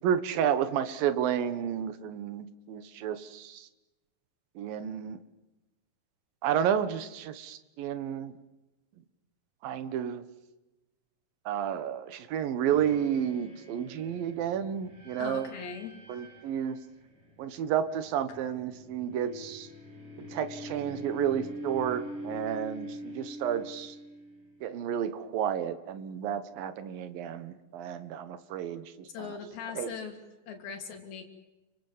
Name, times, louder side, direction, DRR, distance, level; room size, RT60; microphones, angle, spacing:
voice 1, 0.0-3.7 4.6-5.2 6.4-8.4 9.6-10.2 11.5-15.5 16.1-16.8 17.4-19.7 20.2-24.0 24.6-29.4 29.7-30.0, right 9 dB, 75° right, 12 dB, 3.2 m, -31 dB
sound 1, 12.7-24.8, equal, 20° right, 5.5 m, -45 dB
voice 2, 15.2-15.9 29.1-30.2 30.5-31.2, left 6 dB, 80° left, 4 dB, 4.9 m, -39 dB
30.0 x 25.0 x 7.5 m, 1.1 s
omnidirectional pair, 4.2 m